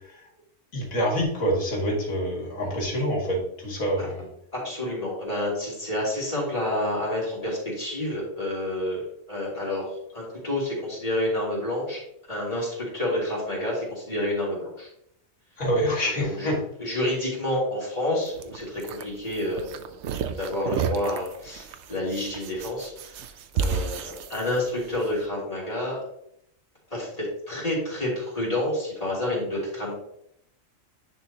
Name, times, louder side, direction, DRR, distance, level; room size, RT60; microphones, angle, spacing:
voice 1, 0.7-4.3 15.6-16.6, equal, 90° left, -1 dB, 2.4 m, -26 dB
voice 2, 4.5-9.9 10.1-12.0 12.3-14.9 16.2-19.9 20.4-23.3 23.5-26.0 26.9-29.9, left 1 dB, 25° left, -5 dB, 3.2 m, -29 dB
sound 1, 18.3-25.1, right 6 dB, 65° right, 0.8 m, -32 dB
10.0 x 4.6 x 2.9 m, 0.73 s
omnidirectional pair, 1.4 m